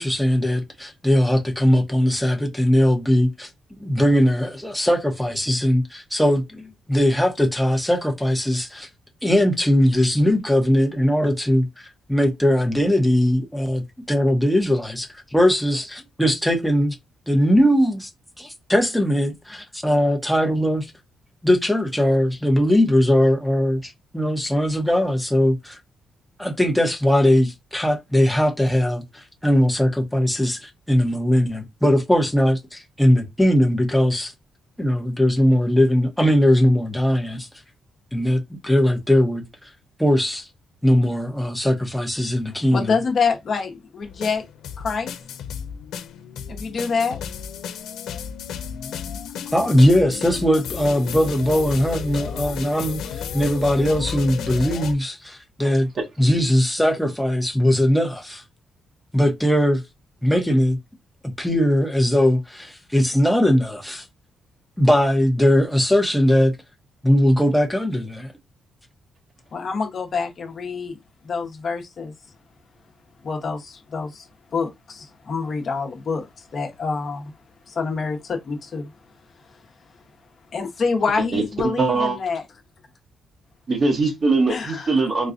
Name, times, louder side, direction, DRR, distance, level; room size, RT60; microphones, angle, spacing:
voice 1, 0.0-3.5 3.8-8.9 9.2-16.9 17.3-18.1 18.4-20.9 21.4-25.8 26.4-34.3 34.8-37.5 38.1-39.4 40.0-40.5 40.8-42.9 49.5-55.9 56.2-58.4 59.1-59.8 60.2-60.8 61.2-64.0 64.8-66.5 67.0-68.3, equal, ahead, 0.9 m, -20 dB
voice 2, 42.5-44.4 44.8-45.1 46.5-47.2 69.5-71.0 71.2-72.1 73.2-77.3 77.7-78.9 80.5-82.4 84.5-85.0, left 5 dB, 50° left, 1.0 m, -26 dB
sound 1, 44.0-54.9, left 8 dB, 85° left, 0.3 m, -33 dB
voice 3, 81.2-82.2 83.7-85.3, right 3 dB, 40° right, 1.0 m, -21 dB
4.0 x 2.3 x 2.5 m
cardioid pair, 120°, 0 cm